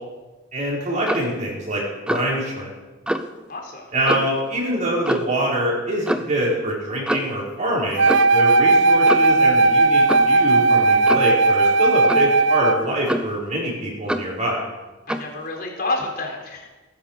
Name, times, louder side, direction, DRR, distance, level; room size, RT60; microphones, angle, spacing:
voice 1, 0.5-2.7 3.9-14.6, right 1 dB, 35° right, -5 dB, 5.0 m, -25 dB
Clock, 1.1-1.3 2.1-2.4 3.1-3.3 4.1-4.4 5.1-5.4 6.1-6.3 7.1-7.4 8.1-8.4 9.1-9.4 10.1-10.3 11.1-11.4 12.1-12.3 13.1-13.5 14.1-14.4 15.1-15.3, equal, 5° right, 0.7 m, -26 dB
voice 2, 3.5-3.9 15.1-16.6, left 2 dB, 45° left, 1 dB, 4.0 m, -29 dB
Wind instrument woodwind instrument, 8.0-12.9, right 3 dB, 65° right, 0.5 m, -16 dB
19.0 x 11.0 x 6.6 m, 1.2 s
head